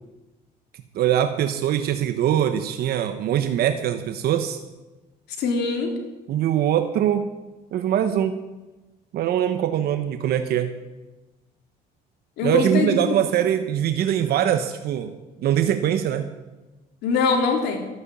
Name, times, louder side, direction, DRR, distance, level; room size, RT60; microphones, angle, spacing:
voice 1, 0.9-4.6 6.3-7.3 7.7-8.4 9.1-10.7 12.4-15.1 15.4-16.2, right 10 dB, 70° right, 8 dB, 1.1 m, -22 dB
voice 2, 5.4-5.9 12.4-13.2 17.0-17.8, left 4 dB, 80° left, 3 dB, 3.3 m, -23 dB
14.0 x 9.6 x 8.5 m, 1.1 s
cardioid pair, 110°, 17 cm